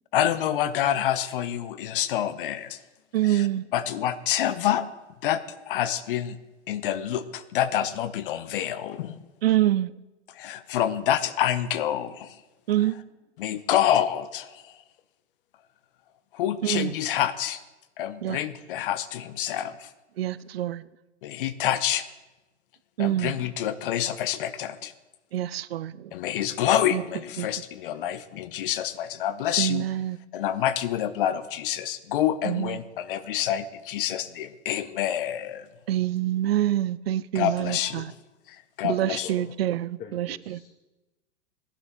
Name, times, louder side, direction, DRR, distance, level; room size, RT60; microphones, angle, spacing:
voice 1, 0.1-2.8 3.3-3.5 3.7-4.8 5.2-5.4 5.7-6.4 6.7-9.2 10.3-12.4 13.4-14.7 16.3-17.6 18.0-19.9 21.2-22.0 23.0-24.9 26.1-29.8 30.3-35.7 37.3-38.1 38.5-39.3, left 11 dB, 50° left, 12 dB, 0.9 m, -27 dB
voice 2, 3.1-3.6 9.4-9.9 12.7-12.9 16.6-16.9 18.2-18.4 20.2-20.8 23.0-23.4 25.3-26.1 26.9-27.0 27.4-27.5 29.6-30.2 32.4-32.8 35.9-38.1 38.8-40.6, right 13 dB, 60° right, 19 dB, 0.6 m, -26 dB
voice 3, 40.0-40.7, left 7 dB, 25° left, 2 dB, 1.5 m, -43 dB
19.0 x 11.5 x 3.4 m, 1.0 s
figure-of-eight pair, 95°, 35 cm